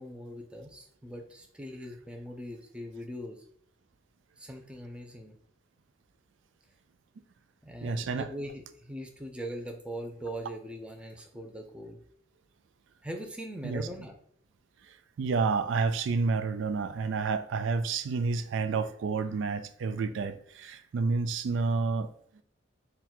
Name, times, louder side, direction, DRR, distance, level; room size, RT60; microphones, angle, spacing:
voice 1, 0.0-3.4 4.4-5.4 7.6-12.0 13.0-14.1, equal, 5° right, 0.5 m, -41 dB
voice 2, 7.8-8.3 13.6-13.9 15.2-22.1, right 4 dB, 70° right, 0.3 m, -29 dB
3.9 x 2.3 x 4.4 m
head